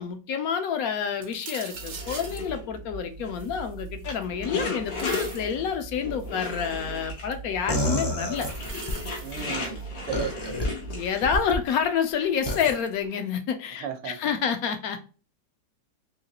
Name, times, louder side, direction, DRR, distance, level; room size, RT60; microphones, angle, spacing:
voice 1, 0.0-8.5 10.9-15.0, left 7 dB, 70° left, 0.9 m, -28 dB
sound 1, 1.2-2.5 3.4-4.2 4.6-5.5 6.2-6.7 8.2-9.8 11.5-11.6 12.5-12.8, right 5 dB, 55° right, 0.7 m, -42 dB
sound 2, 1.7-11.5, left 1 dB, 90° left, 1.8 m, -36 dB
sound 3, 7.7-9.0 10.1-10.7 11.2-11.6 12.5-12.7, equal, 40° left, 0.3 m, -28 dB
voice 2, 9.2-10.7 13.8-14.2, right 8 dB, 90° right, 1.3 m, -36 dB
3.9 x 2.9 x 2.8 m
omnidirectional pair, 1.8 m